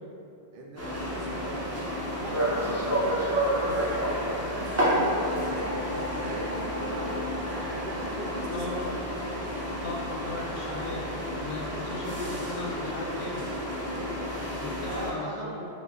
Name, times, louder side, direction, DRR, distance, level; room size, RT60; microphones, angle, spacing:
voice 1, 0.5-1.8 2.2-4.1 4.4-7.2 7.7-9.0 13.9-14.4 14.9-15.6, right 1 dB, 65° right, -2 dB, 0.7 m, -39 dB
sound 1, 0.8-15.1, equal, 25° right, 0.4 m, -30 dB
sound 2, 5.1-9.6, right 1 dB, 80° right, 1.2 m, -40 dB
voice 2, 8.5-8.8 9.8-11.0 11.3-13.5 14.6-15.7, left 2 dB, 60° left, -3 dB, 0.6 m, -37 dB
4.8 x 2.1 x 2.3 m, 2.5 s
omnidirectional pair, 1.1 m